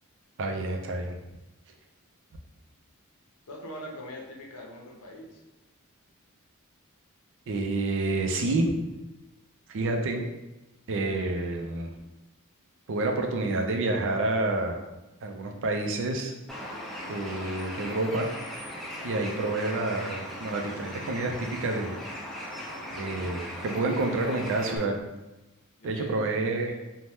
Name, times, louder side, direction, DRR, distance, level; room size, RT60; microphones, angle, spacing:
voice 1, 0.4-1.2 7.5-8.7 9.7-10.2 10.9-11.9 12.9-14.8 15.2-16.3 17.1-18.3 19.0-22.0 22.9-25.0 25.8-26.8, right 2 dB, 60° right, 3 dB, 0.4 m, -28 dB
voice 2, 3.5-5.4 25.8-26.3 26.8-26.9, equal, 80° left, -1 dB, 0.6 m, -42 dB
Bird, 16.5-24.8, equal, ahead, 0.3 m, -39 dB
2.8 x 2.1 x 3.3 m, 1.0 s
head